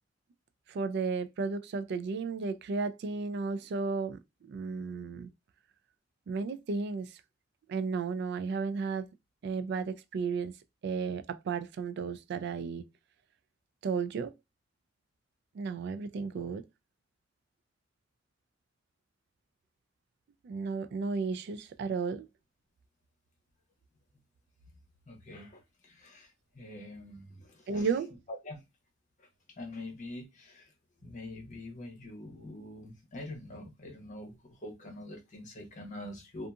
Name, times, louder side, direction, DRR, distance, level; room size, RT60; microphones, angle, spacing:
voice 1, 0.7-4.2 4.5-5.3 6.3-7.1 7.7-9.1 9.4-10.5 10.8-12.8 13.8-14.3 15.5-16.6 20.4-22.3 27.7-28.1, right 4 dB, 60° right, 0.3 m, -33 dB
voice 2, 25.1-27.9 28.3-28.6 29.2-29.3 29.6-30.7 31.0-36.5, left 1 dB, 40° left, 0.9 m, -45 dB
2.7 x 2.4 x 2.3 m
head